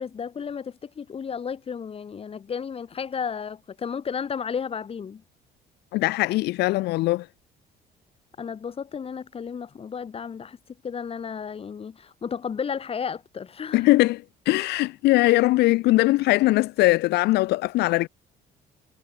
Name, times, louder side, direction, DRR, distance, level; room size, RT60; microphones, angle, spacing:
voice 1, 0.0-5.2 8.4-10.6 10.8-13.9, left 6 dB, 35° left, 1.8 m, -33 dB
voice 2, 5.9-7.3 13.7-18.1, left 19 dB, 80° left, 0.7 m, -21 dB
cardioid pair, 110°, 17 cm